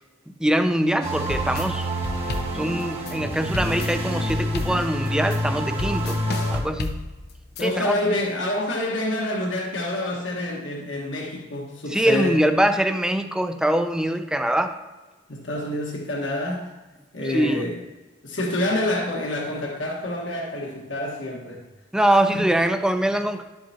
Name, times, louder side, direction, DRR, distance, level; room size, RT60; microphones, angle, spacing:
voice 1, 0.4-1.9 2.5-6.2 6.5-7.1 7.6-8.0 11.9-14.8 17.3-17.6 21.9-23.4, right 1 dB, 5° right, 8 dB, 0.5 m, -23 dB
sound 1, 1.0-7.9, left 3 dB, 55° left, 0.6 m, -33 dB
sound 2, 1.0-6.6, equal, 35° right, 1.2 m, -27 dB
voice 2, 7.6-12.4 15.3-16.7 17.1-17.8 18.2-21.7 22.3-22.4, left 1 dB, 75° left, -2 dB, 1.5 m, -27 dB
11.0 x 7.7 x 2.9 m, 1.2 s
head